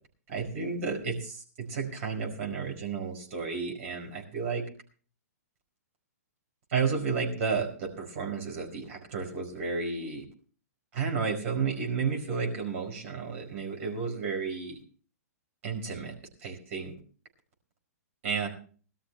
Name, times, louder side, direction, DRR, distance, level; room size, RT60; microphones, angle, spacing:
voice 1, 0.3-4.6 6.7-10.2 10.9-14.8 15.6-16.1 16.4-16.9 18.2-18.5, right 5 dB, 55° right, 3 dB, 4.9 m, -32 dB
19.5 x 13.0 x 3.3 m, 0.41 s
hypercardioid pair, 125°, 9 cm